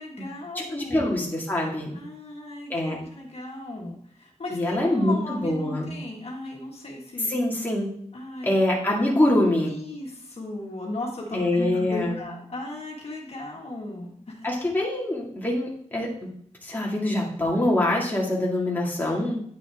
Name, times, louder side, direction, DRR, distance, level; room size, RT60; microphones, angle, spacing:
voice 1, 0.0-1.2 1.9-7.3 8.1-8.5 9.6-14.5, left 2 dB, 55° left, -2 dB, 1.7 m, -36 dB
voice 2, 0.7-1.9 2.7-3.0 4.5-5.9 7.3-7.9 8.4-9.7 11.3-12.2 14.4-16.3 16.6-19.4, left 1 dB, 15° left, -4 dB, 2.0 m, -24 dB
9.6 x 6.2 x 3.5 m, 0.62 s
wide cardioid pair, 115°, 12 cm